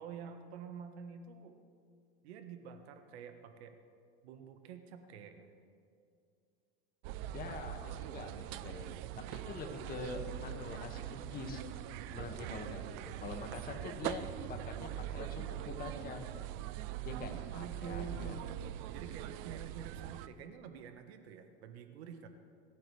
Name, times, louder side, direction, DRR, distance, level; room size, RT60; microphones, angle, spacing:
voice 1, 0.0-1.6 2.2-3.8 4.2-5.5 17.5-18.5 18.9-22.3, right 6 dB, 85° right, 7 dB, 1.5 m, -48 dB
sound 1, 7.0-20.3, right 12 dB, 55° right, 0.7 m, -42 dB
voice 2, 7.3-8.9 9.3-11.6 12.1-16.3 17.0-18.4, left 4 dB, 30° left, 3 dB, 1.8 m, -45 dB
25.0 x 14.5 x 3.4 m, 2.4 s
supercardioid pair, 140°, 31 cm